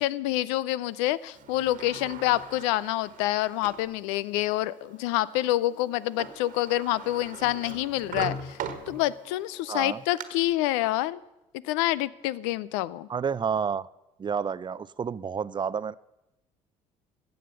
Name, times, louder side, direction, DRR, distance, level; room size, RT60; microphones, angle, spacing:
voice 1, 0.0-8.6 8.9-11.2 11.6-13.1, left 15 dB, 80° left, 20 dB, 0.5 m, -27 dB
Sliding door, 1.3-3.9 4.5-4.6 5.9-6.0 6.2-9.4 9.8-10.2, right 6 dB, 60° right, 1.4 m, -40 dB
sound 1, 1.4-10.3, left 4 dB, 55° left, 2.9 m, -56 dB
voice 2, 9.7-10.0 13.1-13.9 14.2-15.9, right 6 dB, 30° right, 18 dB, 0.5 m, -30 dB
15.0 x 7.8 x 6.8 m, 0.94 s
hypercardioid pair, 65°, 15 cm